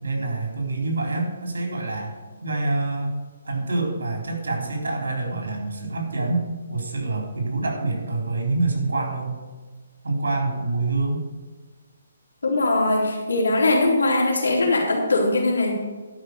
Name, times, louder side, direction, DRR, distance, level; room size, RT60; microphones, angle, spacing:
voice 1, 0.0-2.1 2.4-3.2 3.4-9.4 10.0-11.2, right 2 dB, 75° right, 1 dB, 3.9 m, -26 dB
voice 2, 12.4-15.7, left 2 dB, 80° left, -1 dB, 3.8 m, -21 dB
12.0 x 5.9 x 6.6 m, 1.4 s
hypercardioid pair, 145°, 0 cm